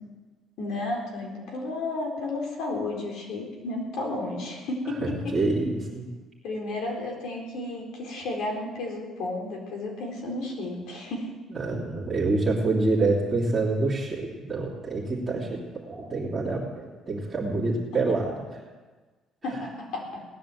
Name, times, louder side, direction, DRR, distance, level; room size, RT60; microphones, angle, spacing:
voice 1, 0.6-5.4 6.4-11.3 19.4-20.3, left 2 dB, 70° left, 0 dB, 4.0 m, -32 dB
voice 2, 5.0-6.0 11.5-18.7 19.5-19.6, right 3 dB, 20° right, -7 dB, 2.9 m, -27 dB
18.5 x 10.0 x 7.7 m, 1.3 s
cardioid pair, 145°, 0 cm